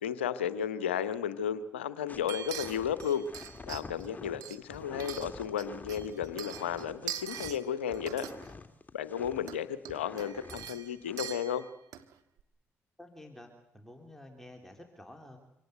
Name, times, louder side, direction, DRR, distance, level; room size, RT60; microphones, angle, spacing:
voice 1, 0.0-3.3 3.7-8.2 8.9-11.7, left 8 dB, 90° left, 15 dB, 0.8 m, -33 dB
sound 1, 2.1-9.5 9.9-10.7 11.0-11.3, left 3 dB, 25° left, 2.3 m, -48 dB
sound 2, 2.3-4.1 4.4-5.6 5.9-7.6 7.9-8.5 9.4-9.6 9.8-12.1 12.4-12.5, right 11 dB, 70° right, 1.5 m, -43 dB
voice 2, 13.0-15.4, left 1 dB, 5° left, 3 dB, 3.6 m, -50 dB
25.5 x 18.5 x 8.1 m, 0.79 s
hypercardioid pair, 45°, 6 cm